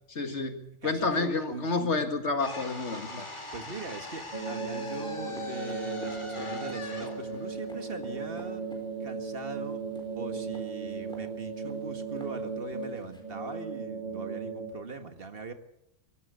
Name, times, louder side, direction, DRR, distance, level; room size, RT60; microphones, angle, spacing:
voice 1, 0.1-3.3, left 3 dB, 75° left, 7 dB, 2.2 m, -30 dB
voice 2, 0.8-1.9 2.7-8.6 9.0-9.8 10.1-15.5, right 4 dB, 55° right, 7 dB, 1.9 m, -41 dB
sound 1, 2.4-8.5, left 3 dB, 25° left, 2.5 m, -42 dB
sound 2, 3.4-13.2, equal, 5° left, 4.6 m, -54 dB
sound 3, 4.3-14.7, right 4 dB, 35° right, 2.2 m, -36 dB
23.0 x 14.0 x 8.3 m, 0.81 s
omnidirectional pair, 1.2 m